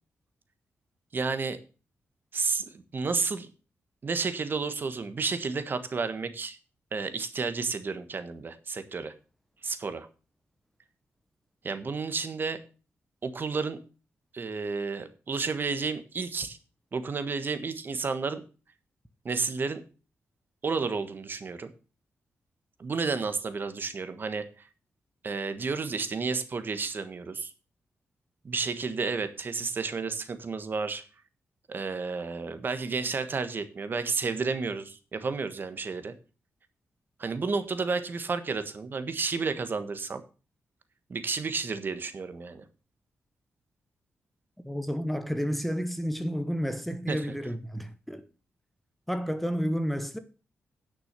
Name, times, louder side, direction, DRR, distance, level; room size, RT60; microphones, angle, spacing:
voice 1, 1.1-1.6 2.3-3.5 4.0-6.6 6.9-9.1 9.6-10.1 11.6-12.6 13.2-13.8 14.3-16.6 16.9-18.4 19.2-19.8 20.6-21.7 22.8-24.5 25.2-27.5 28.4-31.0 31.7-36.1 37.2-40.2 41.1-42.6 47.1-47.2, right 4 dB, 45° right, 1.3 m, -31 dB
voice 2, 44.6-48.2 49.1-50.2, equal, ahead, 0.9 m, -31 dB
10.0 x 6.2 x 6.7 m
cardioid pair, 95°, 5 cm